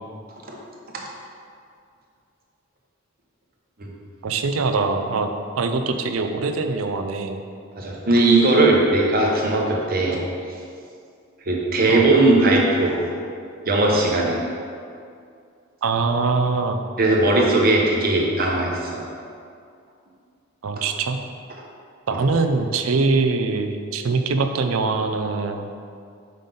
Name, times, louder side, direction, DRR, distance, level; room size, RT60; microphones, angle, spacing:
voice 1, 4.2-5.3 5.5-7.4 11.9-12.1 15.8-16.8 20.6-21.2 22.1-25.7, right 4 dB, 90° right, 6 dB, 0.5 m, -23 dB
voice 2, 7.8-10.2 11.5-13.0 13.7-14.4 17.0-19.0, right 2 dB, 45° right, -1 dB, 1.0 m, -18 dB
5.6 x 5.2 x 3.9 m, 2.3 s
head